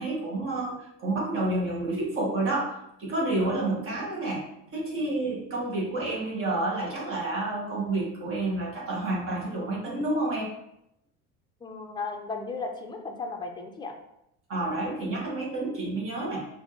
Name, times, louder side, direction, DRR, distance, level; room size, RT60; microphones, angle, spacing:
voice 1, 0.0-4.5 4.7-10.5 14.5-16.5, right 2 dB, 45° right, -3 dB, 1.7 m, -29 dB
voice 2, 11.6-13.9, left 4 dB, 15° left, 2 dB, 0.6 m, -35 dB
4.9 x 2.6 x 3.8 m, 0.81 s
cardioid pair, 140°, 32 cm